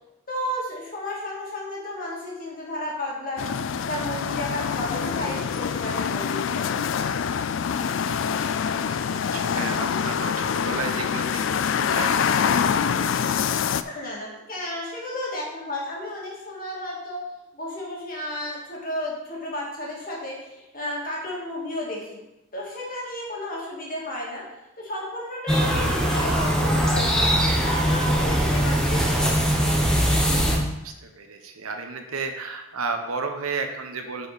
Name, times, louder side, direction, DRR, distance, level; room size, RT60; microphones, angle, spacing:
voice 1, 0.3-3.5 3.9-7.0 13.8-17.3 17.5-22.2 22.5-24.5 24.8-29.3, left 1 dB, 40° left, -4 dB, 2.3 m, -33 dB
sound 1, 3.4-13.8, left 7 dB, 60° left, 0.3 m, -25 dB
voice 2, 8.7-11.4 11.7-13.3 30.8-34.3, right 4 dB, 80° right, 5 dB, 1.1 m, -33 dB
sound 2, 25.5-30.6, equal, 5° left, 0.9 m, -21 dB
9.4 x 5.1 x 4.2 m, 0.94 s
head